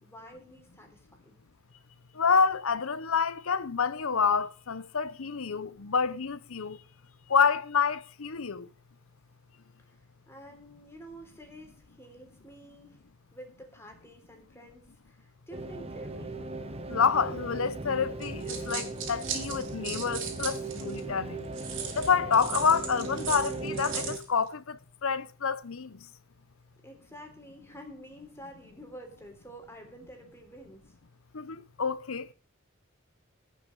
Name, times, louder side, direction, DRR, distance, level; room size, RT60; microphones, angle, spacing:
voice 1, 0.0-1.4 9.8-10.0 10.3-13.0 13.3-16.4 26.8-30.8, equal, 10° left, 3.5 m, -49 dB
voice 2, 2.2-6.8 7.3-8.7 16.9-21.4 22.0-25.9 31.3-32.3, left 6 dB, 70° left, 0.8 m, -28 dB
sound 1, 15.5-24.2, right 2 dB, 30° right, 1.4 m, -38 dB
sound 2, 18.2-21.0 21.5-24.2, right 7 dB, 65° right, 4.4 m, -37 dB
18.0 x 6.6 x 5.3 m
head